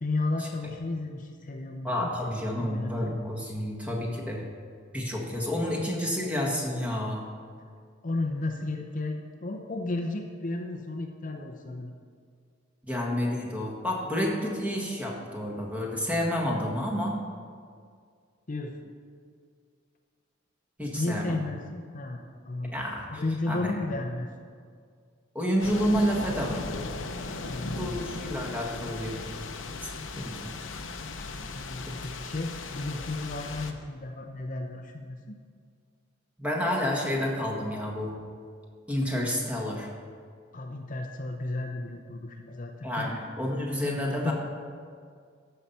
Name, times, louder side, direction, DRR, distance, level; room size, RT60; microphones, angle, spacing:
voice 1, 0.0-2.3 2.6-3.1 8.0-11.9 18.5-18.7 21.0-22.8 23.1-24.3 27.4-28.0 31.5-35.3 40.5-43.1 43.8-44.3, left 2 dB, 45° left, 3 dB, 0.7 m, -33 dB
voice 2, 1.8-4.4 4.9-7.2 12.8-17.1 20.8-21.3 22.7-23.8 25.3-26.6 27.6-29.2 29.8-30.8 31.8-31.9 36.4-38.1 38.9-39.9 42.8-44.3, equal, 10° right, -2 dB, 1.6 m, -30 dB
sound 1, 25.6-33.7, left 3 dB, 80° left, 0.8 m, -37 dB
13.5 x 5.7 x 5.6 m, 2.1 s
head